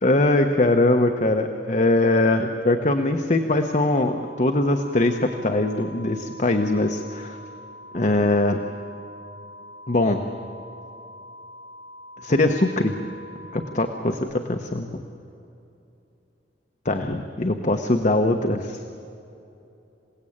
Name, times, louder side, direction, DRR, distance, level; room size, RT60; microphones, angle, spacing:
voice 1, 0.0-7.4 7.9-8.6 9.9-10.2 12.2-13.0 13.5-15.0 16.8-18.9, left 2 dB, 40° left, 5 dB, 1.0 m, -22 dB
sound 1, 4.2-14.2, left 1 dB, 80° right, 4.4 m, -44 dB
27.5 x 17.5 x 8.7 m, 2.8 s
head